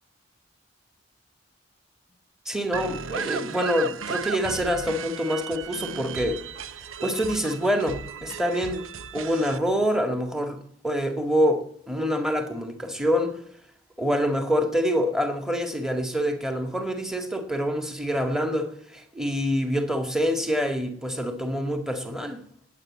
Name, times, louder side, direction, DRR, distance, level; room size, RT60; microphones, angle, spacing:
voice 1, 2.5-6.4 7.0-8.9 9.1-13.4 14.0-22.4, equal, ahead, 6 dB, 1.9 m, -26 dB
sound 1, 2.7-9.6, right 6 dB, 90° right, 0.9 m, -35 dB
19.0 x 8.4 x 8.6 m, 0.68 s
head